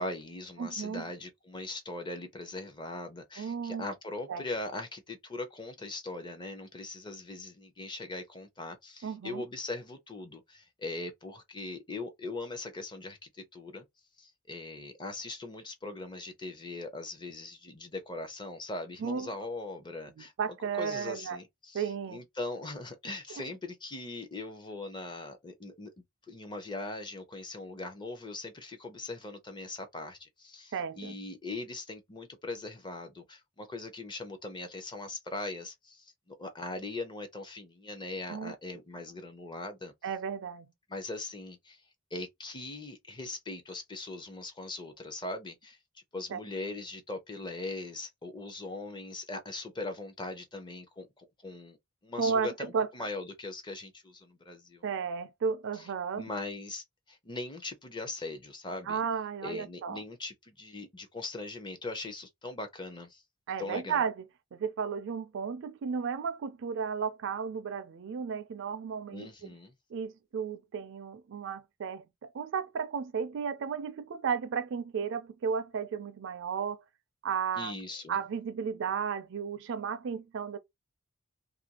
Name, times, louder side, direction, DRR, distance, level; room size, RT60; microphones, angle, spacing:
voice 1, 0.0-13.8 14.2-20.3 20.7-25.9 26.3-39.9 40.9-41.8 42.1-51.8 52.0-54.8 55.7-55.9 56.2-59.0 59.4-63.2 63.6-64.0 69.1-69.7 77.6-78.2, left 2 dB, 20° left, 0.6 m, -40 dB
voice 2, 0.6-1.1 3.4-3.9 4.3-4.4 9.0-9.4 19.0-19.3 20.2-21.4 21.7-22.2 23.3-23.4 30.7-31.1 38.3-38.5 40.0-40.7 46.3-46.4 52.2-52.5 52.7-52.9 54.8-56.3 58.9-60.0 63.5-64.2 64.5-69.5 69.9-76.8 77.2-77.7 78.1-80.6, right 6 dB, 60° right, 0.4 m, -34 dB
2.5 x 2.3 x 2.8 m
head